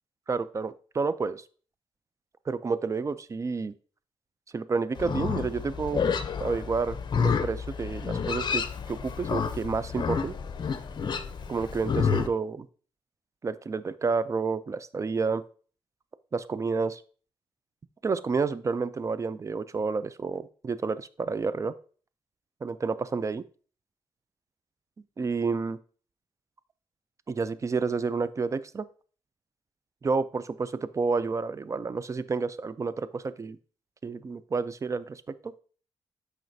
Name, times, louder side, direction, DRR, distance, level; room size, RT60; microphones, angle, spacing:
voice 1, 0.3-1.4 2.5-3.7 4.5-6.1 6.4-10.4 11.5-12.7 13.4-15.4 16.3-17.0 18.0-21.7 22.6-23.4 25.2-25.8 27.3-28.8 30.0-33.6 34.0-35.5, right 4 dB, 35° right, 15 dB, 0.4 m, -30 dB
Livestock farm animals working animals, 5.0-12.3, left 6 dB, 50° left, 0.6 m, -30 dB
7.6 x 4.9 x 2.7 m, 0.41 s
cardioid pair, 80°, 9 cm